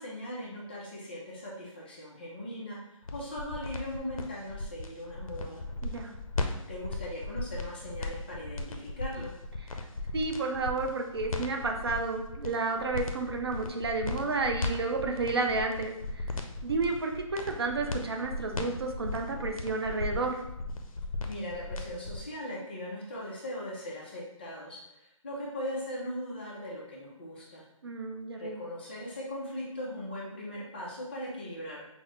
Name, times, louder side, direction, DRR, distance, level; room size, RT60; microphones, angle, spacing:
voice 1, 0.0-2.8 3.1-5.6 6.7-9.3 21.3-27.6 28.4-31.8, left 1 dB, 20° left, -4 dB, 0.5 m, -39 dB
sound 1, 3.0-22.2, left 2 dB, 80° left, 0.6 m, -37 dB
voice 2, 5.8-6.1 10.1-16.3 16.6-20.4 27.8-28.6, right 3 dB, 45° right, 3 dB, 0.5 m, -31 dB
5.8 x 2.0 x 3.1 m, 0.84 s
hypercardioid pair, 165°, 18 cm